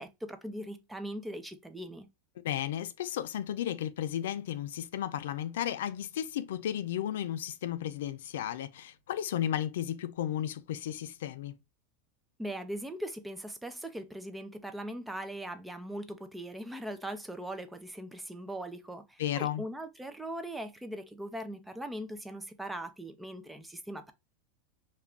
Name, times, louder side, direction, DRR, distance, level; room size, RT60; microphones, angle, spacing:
voice 1, 0.0-2.1 12.4-24.1, right 1 dB, 5° right, 0.4 m, -40 dB
voice 2, 2.4-11.6 19.2-19.6, left 11 dB, 80° left, 0.3 m, -34 dB
2.3 x 2.2 x 3.5 m
hypercardioid pair, 115°, 0 cm